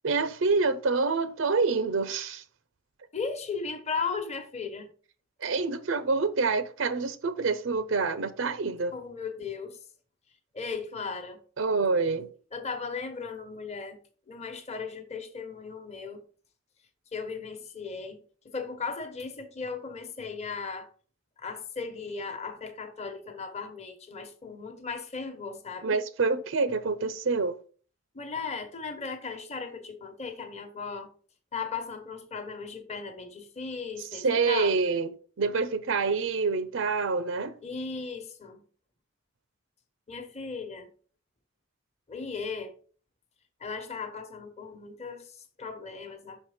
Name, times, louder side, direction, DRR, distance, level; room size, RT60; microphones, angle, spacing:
voice 1, 0.0-2.4 5.4-8.9 11.6-12.3 25.8-27.6 34.1-35.1 35.4-37.6, right 4 dB, 85° right, 0.6 m, -27 dB
voice 2, 3.1-4.9 8.9-9.8 10.5-11.4 12.5-14.0 14.3-16.2 17.1-20.9 21.4-26.0 28.1-31.1 31.5-34.7 37.6-38.6 40.1-40.9 42.1-42.7 43.6-46.4, left 5 dB, 35° left, 1.0 m, -37 dB
6.3 x 4.4 x 5.0 m
head